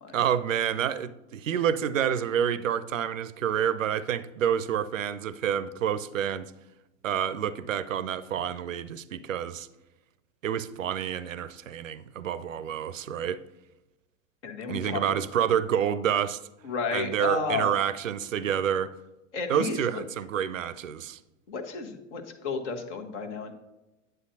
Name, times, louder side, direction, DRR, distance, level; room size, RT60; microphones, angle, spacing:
voice 1, 0.1-6.5 7.0-9.7 10.4-13.4 14.7-16.4 16.9-18.9 19.5-21.2, right 9 dB, 80° right, 15 dB, 0.5 m, -28 dB
voice 2, 14.4-15.0 16.6-17.7 19.3-19.8 21.5-23.5, left 4 dB, 65° left, 5 dB, 1.2 m, -32 dB
9.7 x 7.7 x 2.6 m, 0.99 s
figure-of-eight pair, 85°, 38 cm